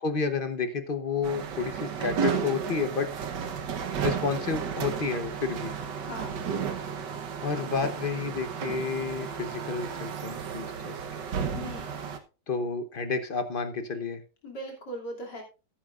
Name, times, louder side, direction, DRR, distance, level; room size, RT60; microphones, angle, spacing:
voice 1, 0.0-3.1 4.0-5.8 7.4-10.9 12.5-14.2, left 5 dB, 40° left, 9 dB, 0.9 m, -30 dB
sound 1, 1.2-12.2, right 7 dB, 85° right, 1.7 m, -33 dB
voice 2, 6.0-6.5 11.5-12.0 14.4-15.4, equal, 75° left, 0 dB, 3.5 m, -39 dB
14.0 x 10.0 x 2.5 m, 0.32 s
omnidirectional pair, 1.8 m